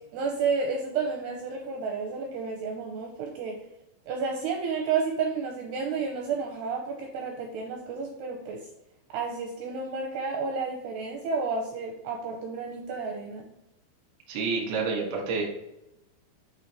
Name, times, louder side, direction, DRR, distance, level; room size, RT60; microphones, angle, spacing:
voice 1, 0.1-3.6 4.1-8.6 9.1-13.5, right 5 dB, 85° right, 1 dB, 2.4 m, -31 dB
voice 2, 14.3-15.4, right 4 dB, 65° right, -2 dB, 1.1 m, -28 dB
7.9 x 3.1 x 4.5 m, 0.88 s
omnidirectional pair, 5.6 m